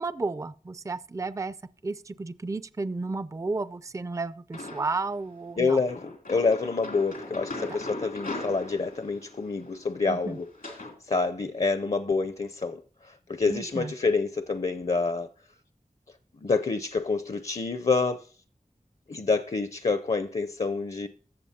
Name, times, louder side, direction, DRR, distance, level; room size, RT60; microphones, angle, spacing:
voice 1, 0.0-1.5 1.8-5.8 10.1-10.4 13.5-13.9, right 3 dB, 20° right, 0.4 m, -32 dB
sound 1, 4.5-5.1 5.9-11.0, left 2 dB, 90° left, 2.9 m, -40 dB
voice 2, 5.6-10.5 10.8-15.3 16.4-18.3 19.1-21.1, left 4 dB, 45° left, 0.6 m, -27 dB
15.5 x 6.9 x 2.8 m
wide cardioid pair, 55°, 15 cm